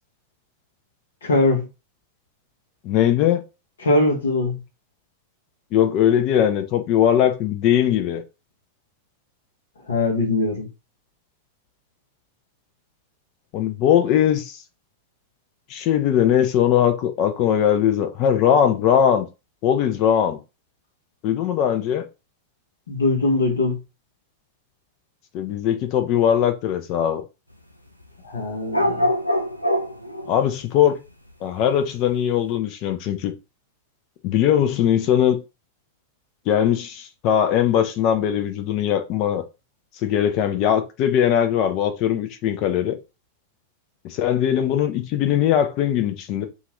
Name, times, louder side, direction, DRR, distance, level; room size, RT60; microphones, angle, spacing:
voice 1, 1.2-1.7 3.8-4.6 9.9-10.7 22.9-23.8 28.2-29.1, left 2 dB, 65° left, 1.0 m, -21 dB
voice 2, 2.8-3.4 5.7-8.2 13.5-14.6 15.7-19.3 19.6-20.4 21.2-22.1 25.3-27.2 30.3-31.0 31.4-33.3 34.2-35.4 36.5-39.4 40.0-43.0 44.0-46.5, left 10 dB, 40° left, 0.6 m, -20 dB
sound 1, 28.7-30.4, equal, 90° left, 0.4 m, -23 dB
2.9 x 2.5 x 3.0 m
figure-of-eight pair, 90°, 0 cm